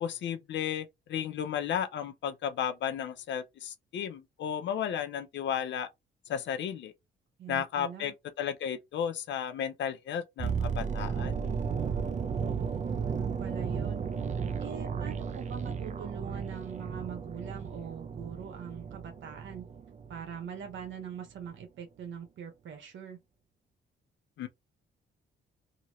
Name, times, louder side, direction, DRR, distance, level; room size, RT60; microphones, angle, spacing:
voice 1, 0.0-5.9 6.3-6.9 7.5-8.1 8.4-11.4 24.4-24.5, left 8 dB, 65° left, 0.6 m, -33 dB
voice 2, 7.4-8.1 11.7-12.5 13.1-14.0 14.6-19.7 20.1-23.2, right 7 dB, 70° right, 0.9 m, -43 dB
sound 1, 10.4-20.4 20.6-20.9, right 6 dB, 40° right, 0.5 m, -34 dB
2.8 x 2.7 x 2.9 m
cardioid pair, 90°, 20 cm